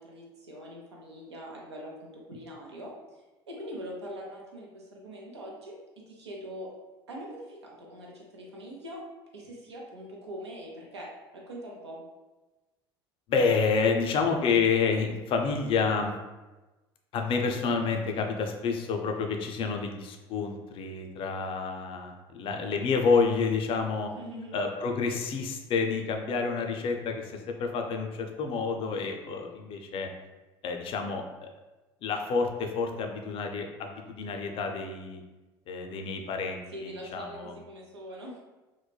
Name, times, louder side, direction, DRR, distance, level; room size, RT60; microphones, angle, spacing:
voice 1, 0.0-5.7 6.1-6.7 7.1-9.0 9.3-11.1 11.3-12.0 24.2-24.6 36.7-38.4, equal, 85° right, -2 dB, 0.6 m, -42 dB
voice 2, 13.3-16.1 17.1-24.1 24.5-30.1 30.6-31.5 32.0-35.2 35.7-37.5, left 5 dB, 40° left, 3 dB, 0.4 m, -29 dB
3.1 x 2.1 x 2.2 m, 1.1 s
figure-of-eight pair, 70°, 14 cm